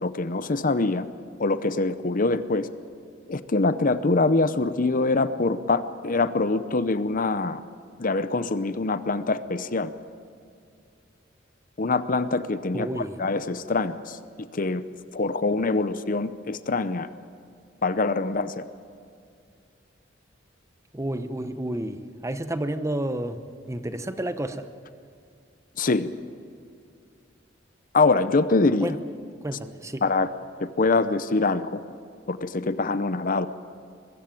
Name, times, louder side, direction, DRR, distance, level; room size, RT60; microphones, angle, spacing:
voice 1, 0.0-1.1 1.4-2.7 3.3-7.6 8.0-9.9 11.8-14.8 15.1-17.1 17.8-18.6 25.8-26.1 27.9-28.9 30.0-30.3 30.6-31.8 32.3-33.5, left 3 dB, 45° left, 13 dB, 0.7 m, -24 dB
voice 2, 12.7-13.2 20.9-23.4 23.7-24.7 28.8-29.0 29.4-30.0, right 1 dB, 15° right, 10 dB, 0.8 m, -30 dB
22.5 x 14.5 x 9.0 m, 2.3 s
head